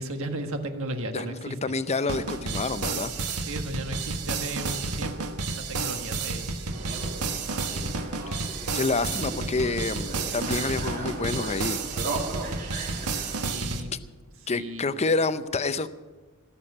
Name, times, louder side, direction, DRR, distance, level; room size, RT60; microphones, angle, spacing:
voice 1, 0.0-1.5 3.5-7.0 12.8-13.9 14.5-14.8, right 1 dB, 65° right, 6 dB, 1.5 m, -36 dB
voice 2, 1.1-3.1 8.3-8.4 8.7-11.8 14.5-15.9, left 3 dB, 30° left, 13 dB, 0.6 m, -28 dB
sound 1, 2.1-13.8, right 4 dB, 90° right, 1.4 m, -31 dB
sound 2, 6.7-13.4, right 2 dB, 40° right, 2.2 m, -37 dB
17.0 x 7.1 x 8.7 m, 1.3 s
head